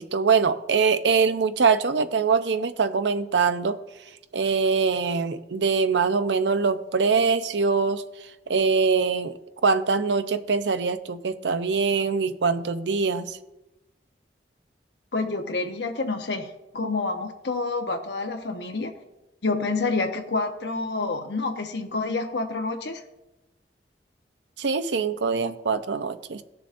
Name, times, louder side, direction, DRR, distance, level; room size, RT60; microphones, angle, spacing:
voice 1, 0.0-3.8 4.3-8.0 8.5-9.4 9.6-13.4 24.6-26.4, right 5 dB, 85° right, 11 dB, 0.6 m, -23 dB
voice 2, 15.1-18.9 19.4-23.0, left 3 dB, 75° left, 5 dB, 1.0 m, -28 dB
18.5 x 6.9 x 2.6 m, 1.0 s
head